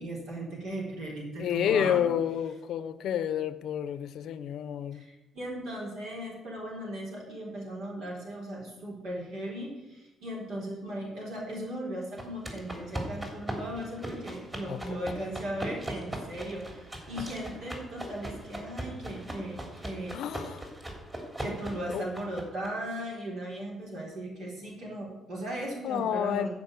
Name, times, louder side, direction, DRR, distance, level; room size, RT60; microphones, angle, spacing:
voice 1, 0.0-2.0 4.9-20.2 21.4-26.5, right 1 dB, 80° right, -3 dB, 4.0 m, -37 dB
voice 2, 1.4-5.0 14.7-15.0 20.1-20.7 21.9-22.0 25.8-26.5, left 9 dB, 75° left, 13 dB, 0.6 m, -30 dB
sound 1, 12.2-22.7, right 1 dB, 25° right, 3.3 m, -39 dB
13.0 x 5.3 x 8.1 m, 1.1 s
cardioid pair, 90°, 0 cm